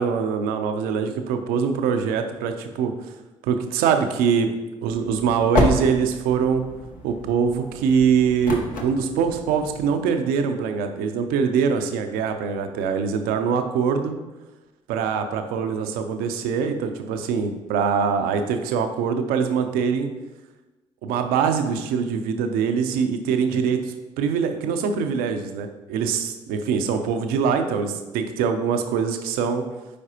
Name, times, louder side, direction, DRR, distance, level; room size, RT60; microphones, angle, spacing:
voice 1, 0.0-2.9 3.4-4.5 4.8-6.6 7.0-14.1 14.9-20.1 21.0-29.6, right 6 dB, 75° right, 6 dB, 0.7 m, -23 dB
sound 1, 4.9-9.9, left 2 dB, 65° left, 1.2 m, -29 dB
8.4 x 4.7 x 2.9 m, 1.1 s
hypercardioid pair, 50°, 16 cm